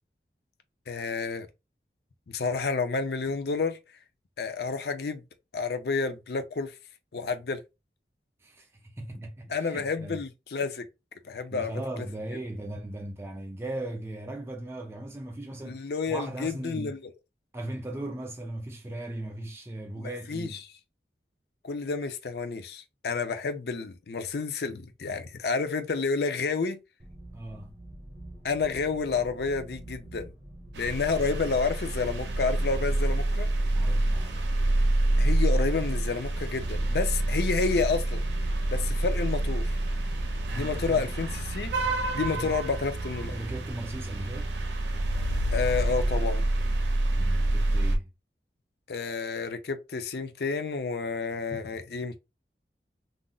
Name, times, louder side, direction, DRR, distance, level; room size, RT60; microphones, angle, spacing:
voice 1, 0.9-1.5 2.3-3.8 4.4-5.2 5.5-6.7 7.1-7.6 9.5-10.8 11.2-11.7 15.6-17.0 20.0-20.5 21.6-26.8 28.4-30.3 30.7-33.5 35.2-38.2 38.7-39.8 40.5-41.7 42.1-43.3 45.5-46.4 48.9-52.2, left 4 dB, 65° left, 0.5 m, -30 dB
voice 2, 8.4-10.2 11.3-17.0 17.5-20.6 27.3-27.8 33.7-34.4 40.3-41.0 42.1-42.5 43.3-44.5 47.2-48.1, right 1 dB, 15° right, 0.3 m, -38 dB
sound 1, 27.0-43.7, right 1 dB, 30° right, 0.7 m, -46 dB
sound 2, 30.7-48.0, right 1 dB, 80° right, 0.6 m, -27 dB
2.5 x 2.0 x 3.7 m
head